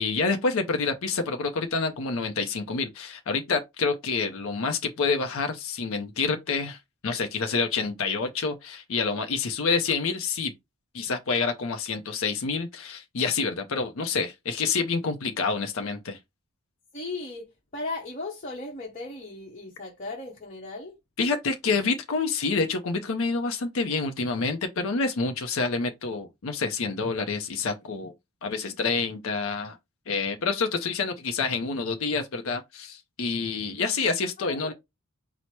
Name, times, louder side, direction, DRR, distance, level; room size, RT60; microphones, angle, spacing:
voice 1, 0.0-10.5 10.9-16.2 21.2-28.1 28.4-29.8 30.1-34.7, left 4 dB, 60° left, 0.5 m, -28 dB
voice 2, 16.9-21.0 34.4-34.7, left 2 dB, 35° left, 0.9 m, -36 dB
4.5 x 2.0 x 4.2 m
head